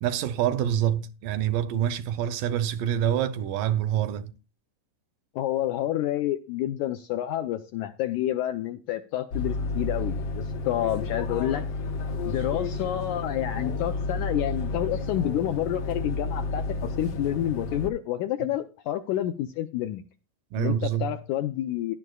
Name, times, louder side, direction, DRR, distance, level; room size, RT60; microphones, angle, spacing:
voice 1, 0.0-4.3 20.5-21.2, right 10 dB, 80° right, 2.1 m, -26 dB
voice 2, 5.4-11.6 12.3-20.0 20.6-22.0, left 12 dB, 80° left, 1.8 m, -29 dB
sound 1, 9.3-17.9, left 3 dB, 65° left, 1.6 m, -31 dB
17.5 x 11.0 x 2.3 m
omnidirectional pair, 4.1 m